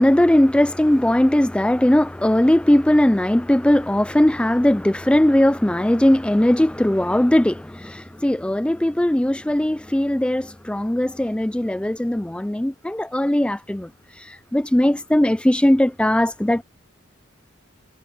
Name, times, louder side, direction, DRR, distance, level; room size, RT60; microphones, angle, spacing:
voice 1, 0.0-13.9 14.2-16.6, left 1 dB, 5° left, 0.3 m, -19 dB
head